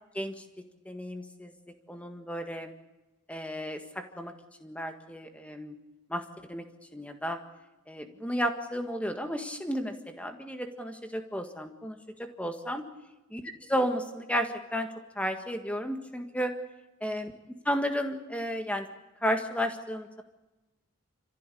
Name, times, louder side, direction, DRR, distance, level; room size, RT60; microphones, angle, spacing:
voice 1, 0.9-1.5 1.9-2.7 3.3-4.3 4.6-5.8 6.1-6.7 6.9-7.4 7.9-12.0 12.4-12.8 13.3-13.4 13.7-14.9 15.2-16.5 17.0-17.3 17.7-18.9 19.2-20.2, equal, 5° left, 6 dB, 1.7 m, -33 dB
27.5 x 15.0 x 8.5 m, 1.1 s
head